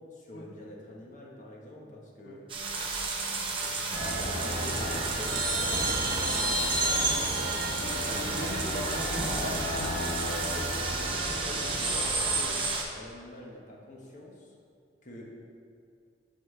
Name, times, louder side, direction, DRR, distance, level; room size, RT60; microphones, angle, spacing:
voice 1, 0.1-2.7 3.2-7.5 10.4-12.5 12.9-14.5 15.0-15.3, left 1 dB, 40° left, -3 dB, 1.1 m, -45 dB
sound 1, 2.5-12.8, right 3 dB, 30° right, 0.8 m, -33 dB
sound 2, 3.9-12.4, right 1 dB, 50° right, 1.5 m, -32 dB
voice 2, 7.8-10.3, left 1 dB, 70° left, 0 dB, 1.0 m, -39 dB
11.0 x 4.3 x 3.3 m, 2.4 s
head